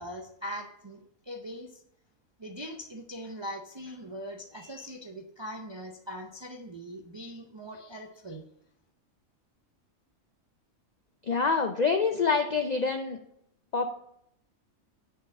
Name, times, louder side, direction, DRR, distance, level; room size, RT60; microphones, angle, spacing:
voice 1, 0.0-1.8 2.4-8.4, equal, 45° right, 1 dB, 0.3 m, -41 dB
voice 2, 11.2-13.2 13.7-13.9, left 4 dB, 70° left, 5 dB, 0.4 m, -26 dB
8.9 x 3.9 x 5.3 m, 0.75 s
omnidirectional pair, 1.4 m